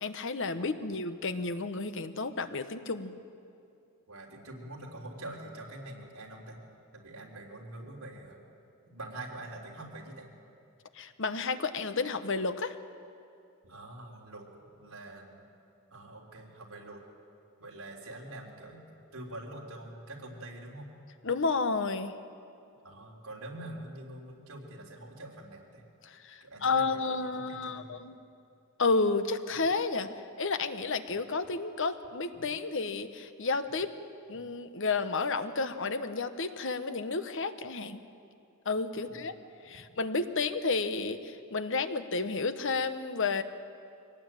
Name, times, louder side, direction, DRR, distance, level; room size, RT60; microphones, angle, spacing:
voice 1, 0.0-3.1 10.9-12.8 21.2-22.2 26.0-28.1 28.8-30.1 30.4-33.9 34.3-38.0 38.6-39.3 39.6-43.4, left 4 dB, 60° left, 10 dB, 1.1 m, -31 dB
voice 2, 4.1-6.6 6.9-8.4 8.8-10.3 13.6-14.5 14.7-15.4 15.9-17.0 17.6-18.8 19.1-20.9 22.8-25.8 26.4-28.0 29.5-29.6 32.3-32.4 38.9-39.4, right 1 dB, 75° right, -2 dB, 3.6 m, -45 dB
23.0 x 18.5 x 9.1 m, 2.6 s
head